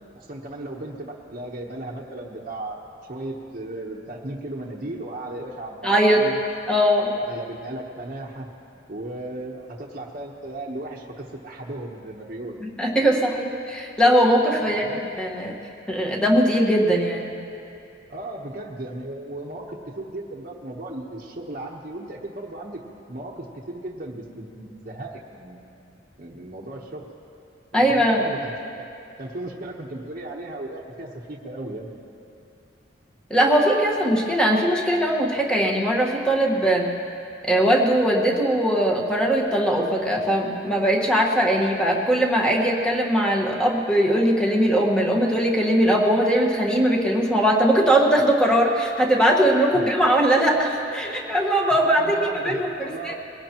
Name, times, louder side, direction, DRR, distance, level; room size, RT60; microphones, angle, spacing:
voice 1, 0.1-2.8 3.1-6.4 7.1-8.5 8.9-12.6 14.6-15.0 18.1-22.8 23.1-25.6 26.2-27.1 27.7-28.9 29.2-31.9 49.7-49.9 52.0-53.1, right 1 dB, 45° right, -4 dB, 1.1 m, -36 dB
voice 2, 5.8-6.2 6.7-7.1 12.6-14.8 15.2-15.5 15.9-17.3 27.7-28.3 33.3-36.8 37.4-53.1, right 1 dB, 5° left, -2 dB, 1.5 m, -20 dB
22.0 x 17.0 x 3.0 m, 2.7 s
head